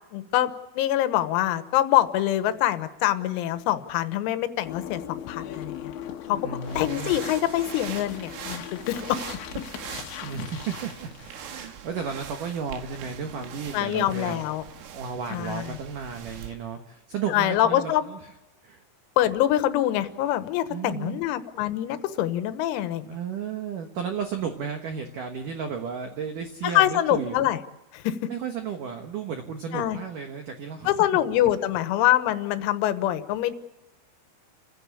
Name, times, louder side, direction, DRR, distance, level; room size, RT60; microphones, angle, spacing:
voice 1, 0.1-5.9 6.3-6.4 6.8-9.2 13.7-14.7 15.3-15.8 17.3-18.0 19.2-23.2 26.6-27.6 27.9-28.2 29.7-30.0 30.9-33.5, left 13 dB, 90° left, 11 dB, 3.9 m, -25 dB
sound 1, 4.6-11.4, left 10 dB, 70° left, 3.4 m, -39 dB
voice 2, 6.3-7.2 10.2-14.4 14.9-18.2 18.6-18.8 20.7-21.2 23.0-27.4 28.3-30.9, right 6 dB, 90° right, 5 dB, 1.8 m, -33 dB
sound 2, 6.6-16.6, right 8 dB, 70° right, 3.9 m, -42 dB
29.0 x 15.5 x 8.4 m, 1.0 s
omnidirectional pair, 6.0 m